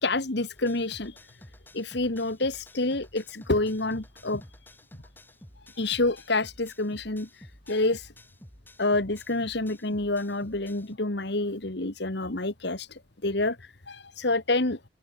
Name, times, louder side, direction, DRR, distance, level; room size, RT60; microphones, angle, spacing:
voice 1, 0.0-1.2 1.7-4.4 5.8-8.1 8.8-14.8, left 2 dB, 55° left, 1.7 m, -28 dB
sound 1, 0.6-11.0, left 1 dB, 10° left, 6.6 m, -52 dB
open air
head